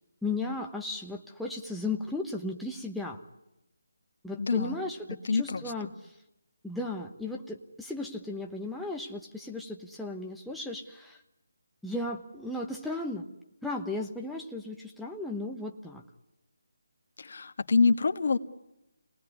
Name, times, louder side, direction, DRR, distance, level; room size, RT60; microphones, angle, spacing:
voice 1, 0.2-3.2 4.2-6.1 6.6-11.2 11.8-13.2 13.6-16.0, left 2 dB, ahead, -2 dB, 1.1 m, -35 dB
voice 2, 4.4-4.8 5.2-5.9 17.2-18.4, left 4 dB, 60° left, 9 dB, 1.5 m, -26 dB
27.0 x 19.5 x 9.7 m, 0.93 s
figure-of-eight pair, 165°, 0 cm